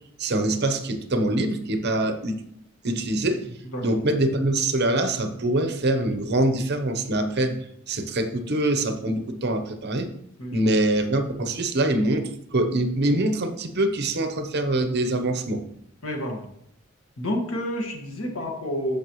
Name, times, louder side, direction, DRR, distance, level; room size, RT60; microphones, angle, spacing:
voice 1, 0.2-2.4 2.8-3.4 3.8-7.5 7.9-10.1 10.5-15.6, right 1 dB, 55° right, 8 dB, 0.9 m, -24 dB
voice 2, 10.4-10.7 16.0-16.4 17.2-19.0, equal, 90° left, 2 dB, 1.8 m, -29 dB
13.0 x 5.5 x 3.1 m, 0.76 s
head